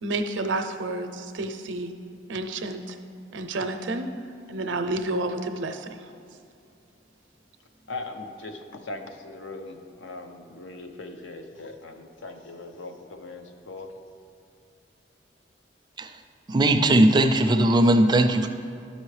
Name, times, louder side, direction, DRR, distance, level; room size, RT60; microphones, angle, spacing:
voice 1, 0.0-1.9 2.3-3.0 3.3-4.1 4.5-5.9, right 2 dB, 75° right, 7 dB, 0.5 m, -30 dB
voice 2, 7.9-13.9, left 2 dB, 85° left, 6 dB, 0.7 m, -39 dB
voice 3, 16.5-18.5, right 1 dB, 25° right, 7 dB, 0.4 m, -19 dB
11.5 x 5.5 x 3.2 m, 2.5 s
head